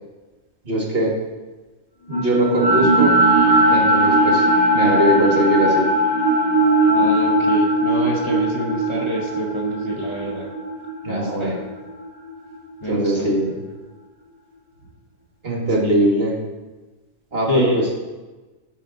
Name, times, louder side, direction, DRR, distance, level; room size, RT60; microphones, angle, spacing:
voice 1, 0.6-1.1 2.1-3.1 3.7-4.5 4.7-5.9 11.0-11.6 12.9-13.7 15.4-16.4 17.3-17.9, right 1 dB, 45° right, -2 dB, 2.0 m, -20 dB
sound 1, 2.1-12.3, right 1 dB, 60° left, 2.9 m, -18 dB
voice 2, 6.9-10.5 11.1-11.6 12.8-13.3 15.8-16.1 17.5-17.9, left 1 dB, 25° left, -3 dB, 1.1 m, -27 dB
12.0 x 6.1 x 4.0 m, 1.2 s
omnidirectional pair, 1.4 m